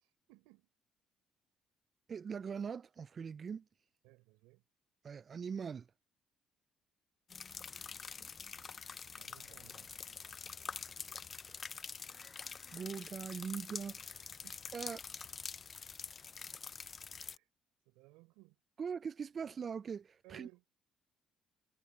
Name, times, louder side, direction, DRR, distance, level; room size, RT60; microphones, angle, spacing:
voice 1, 0.3-0.7 4.0-4.6 9.1-9.9 14.4-14.9 17.1-17.4 17.9-18.6 20.2-20.6, right 23 dB, 85° right, 4.1 m, -60 dB
voice 2, 2.1-3.6 5.0-5.9 12.7-14.2 14.7-15.0 18.8-20.5, right 6 dB, 45° right, 0.4 m, -41 dB
sound 1, 7.3-17.4, left 5 dB, 45° left, 0.6 m, -46 dB
hypercardioid pair, 55°, 0 cm